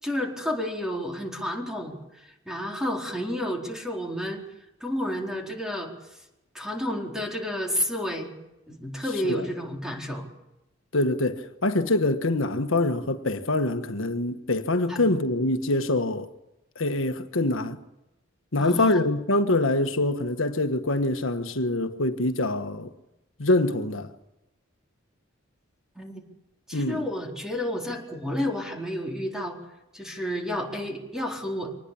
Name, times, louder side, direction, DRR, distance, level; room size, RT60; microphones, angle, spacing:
voice 1, 0.0-4.4 4.8-5.9 6.5-8.3 8.7-10.3 14.9-15.0 18.6-19.0 26.0-26.1 26.7-29.6 29.9-31.7, equal, 5° right, 4.3 m, -31 dB
voice 2, 10.9-16.3 16.7-17.8 18.5-22.9 23.4-24.1 26.7-27.1, left 2 dB, 90° left, 1.5 m, -25 dB
24.5 x 19.5 x 8.7 m
head